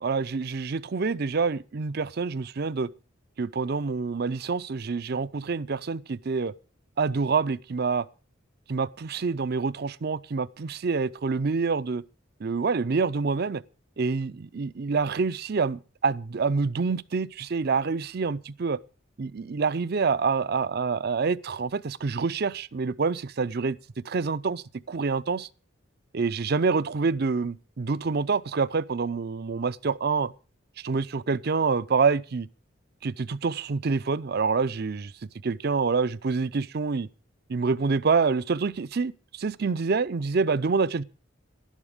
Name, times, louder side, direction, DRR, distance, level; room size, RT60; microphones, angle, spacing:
voice 1, 0.0-2.9 3.4-6.5 7.0-8.1 8.7-12.0 12.4-13.6 14.0-18.8 19.2-23.8 24.0-25.5 26.1-30.3 30.8-32.5 33.0-35.1 35.4-37.1 37.5-41.0, right 4 dB, 55° right, 0.5 m, -27 dB
12.0 x 11.0 x 5.0 m
head